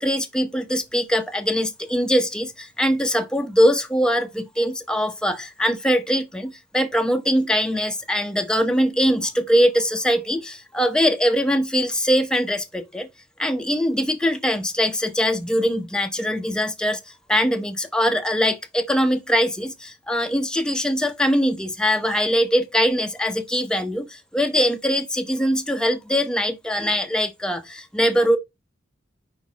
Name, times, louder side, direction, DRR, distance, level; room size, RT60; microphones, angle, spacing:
voice 1, 0.0-13.1 13.4-17.0 17.3-28.4, equal, 5° left, 0.7 m, -22 dB
5.1 x 4.6 x 5.2 m
head